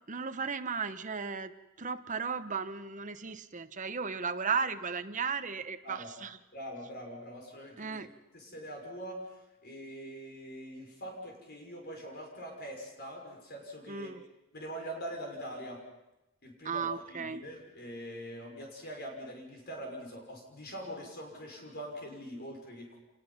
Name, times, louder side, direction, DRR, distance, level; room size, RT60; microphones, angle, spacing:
voice 1, 0.1-1.5 1.8-6.4 7.8-8.1 13.9-14.2 16.6-17.4, right 5 dB, 35° right, 10 dB, 0.9 m, -35 dB
voice 2, 6.5-8.0 8.3-14.1 14.5-15.8 16.4-23.0, equal, 45° left, 1 dB, 5.7 m, -43 dB
26.5 x 20.0 x 5.7 m, 0.96 s
head